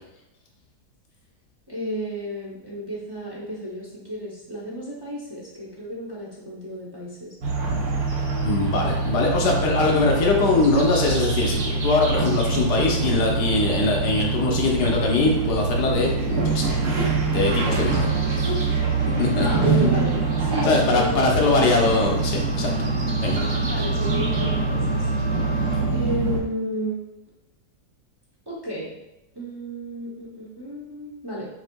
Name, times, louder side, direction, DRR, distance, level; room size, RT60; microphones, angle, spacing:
voice 1, 1.7-7.3 19.3-22.2 23.6-25.1 25.9-27.0 28.5-28.9 29.3-31.5, equal, 40° right, -6 dB, 0.3 m, -32 dB
sound 1, 7.4-26.4, right 3 dB, 80° right, 1.3 m, -24 dB
voice 2, 8.4-18.1 18.4-18.5 19.2-19.5 20.6-22.7 23.2-23.4, left 3 dB, 80° left, 0 dB, 1.3 m, -22 dB
sound 2, 17.4-25.8, equal, 25° right, 1.1 m, -38 dB
6.4 x 2.6 x 2.2 m, 0.93 s
omnidirectional pair, 1.8 m